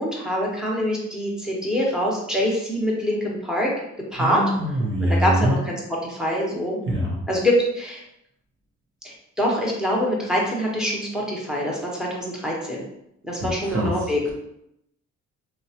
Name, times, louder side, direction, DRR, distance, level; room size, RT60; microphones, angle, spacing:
voice 1, 0.0-3.7 4.1-4.4 5.0-6.8 7.3-8.0 9.0-12.8 13.2-14.3, equal, ahead, -3 dB, 0.8 m, -24 dB
voice 2, 4.2-5.5 6.9-7.2 13.4-13.9, right 1 dB, 45° right, -4 dB, 0.8 m, -23 dB
3.0 x 2.1 x 2.7 m, 0.80 s
cardioid pair, 90°, 30 cm